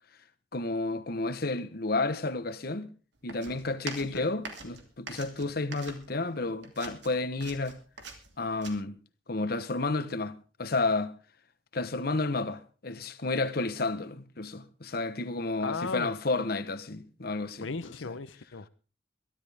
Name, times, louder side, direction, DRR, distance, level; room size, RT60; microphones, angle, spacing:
voice 1, 0.5-2.9 3.2-7.8 8.4-9.0 9.3-10.3 10.6-11.1 11.7-18.2, left 3 dB, 50° left, 1.1 m, -31 dB
sound 1, 3.3-6.3 6.6-8.7, right 4 dB, 65° right, 2.8 m, -44 dB
voice 2, 15.6-16.1 17.6-18.7, left 4 dB, 90° left, 0.8 m, -36 dB
22.5 x 12.0 x 3.5 m
head